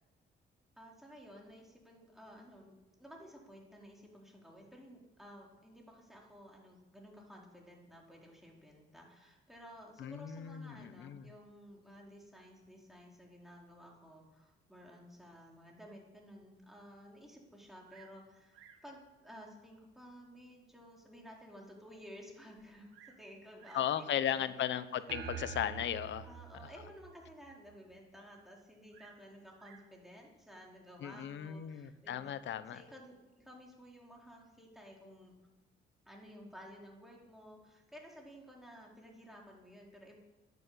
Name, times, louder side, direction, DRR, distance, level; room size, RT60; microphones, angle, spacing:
voice 1, 0.8-24.6 26.2-32.3 32.7-35.3 36.1-40.2, equal, ahead, -1 dB, 4.3 m, -54 dB
voice 2, 10.0-11.3 23.7-26.3 26.6-26.7 31.0-32.8, left 10 dB, 70° left, 13 dB, 1.0 m, -36 dB
Bird vocalization bird call bird song, 17.8-18.2 18.5-18.9 19.8-19.9 20.5-20.6 21.1-21.2 21.4-21.5 22.6-23.3 23.6-23.9 24.9-25.3 28.9-29.9 31.0-31.5, right 8 dB, 90° right, 1.7 m, -61 dB
sound 1, 25.1-27.7, right 8 dB, 60° right, 1.6 m, -46 dB
10.5 x 10.5 x 8.7 m, 1.0 s
cardioid pair, 90°, 20 cm